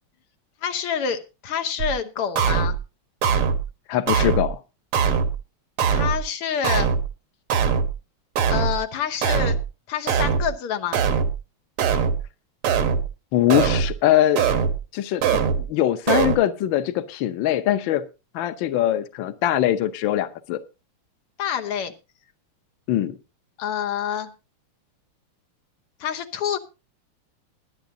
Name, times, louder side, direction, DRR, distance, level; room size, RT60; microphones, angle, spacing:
voice 1, 0.6-2.8 5.9-6.9 8.5-9.6 9.9-11.0 21.4-21.9 23.6-24.3 26.0-26.6, left 8 dB, 90° left, 7 dB, 2.1 m, -27 dB
sound 1, 1.8-1.9 2.4-2.8 3.2-3.6 4.1-4.5 4.9-5.4 5.8-6.2 6.6-7.1 7.5-7.9 8.4-8.8 9.2-9.6 10.1-10.5 10.9-11.4 11.8-12.2 12.6-13.1 13.5-13.9 14.4-14.8 15.2-15.6 16.1-16.4, right 6 dB, 80° right, 2.1 m, -21 dB
voice 2, 3.9-4.6 13.3-14.4 14.9-18.0 18.3-20.6 22.9-23.2, left 12 dB, 65° left, 10 dB, 1.5 m, -22 dB
20.5 x 10.5 x 2.7 m, 0.28 s
omnidirectional pair, 2.4 m